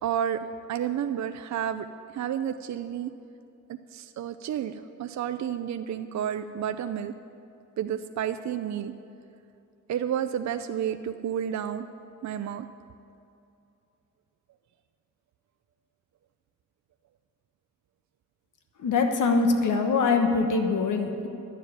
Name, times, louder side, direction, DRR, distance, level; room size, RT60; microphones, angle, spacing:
voice 1, 0.0-1.8 2.1-3.1 3.7-7.1 7.8-8.9 9.9-11.9 12.2-12.7, right 9 dB, 60° right, 9 dB, 0.5 m, -31 dB
voice 2, 18.8-21.3, left 4 dB, 70° left, 4 dB, 1.1 m, -23 dB
11.5 x 7.0 x 9.5 m, 2.7 s
wide cardioid pair, 125°, 32 cm